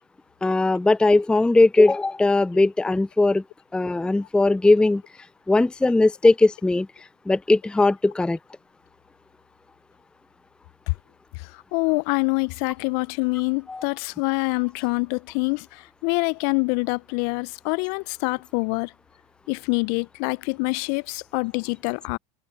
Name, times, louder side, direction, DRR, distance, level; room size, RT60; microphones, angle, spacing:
voice 1, 0.4-3.4 3.7-5.0 5.5-6.9 7.3-8.4 13.7-13.8, left 2 dB, 5° left, 0.5 m, -19 dB
voice 2, 11.3-18.9 19.5-22.2, left 33 dB, 55° left, 0.8 m, -25 dB
hypercardioid pair, 80°, 19 cm